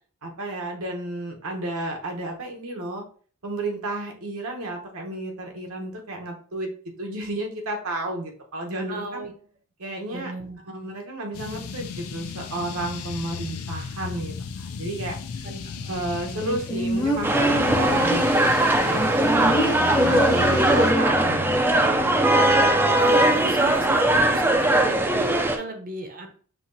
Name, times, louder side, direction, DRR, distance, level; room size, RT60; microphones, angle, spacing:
voice 1, 0.2-3.0 3.4-6.7 7.0-9.3 9.8-10.3 10.7-15.5 15.9-18.5 18.8-19.0 19.3-22.2, right 2 dB, 75° right, 2 dB, 1.0 m, -32 dB
voice 2, 8.9-9.3 10.1-10.6 15.4-15.9 23.0-26.3, right 2 dB, 40° right, 5 dB, 0.7 m, -34 dB
sound 1, 11.3-20.9, left 5 dB, 80° left, 0.5 m, -36 dB
sound 2, 16.4-18.3 18.9-21.3 21.6-21.7, equal, 20° left, 0.7 m, -26 dB
sound 3, 17.2-25.6, right 1 dB, 10° right, 0.3 m, -20 dB
5.9 x 2.8 x 2.6 m, 0.43 s
head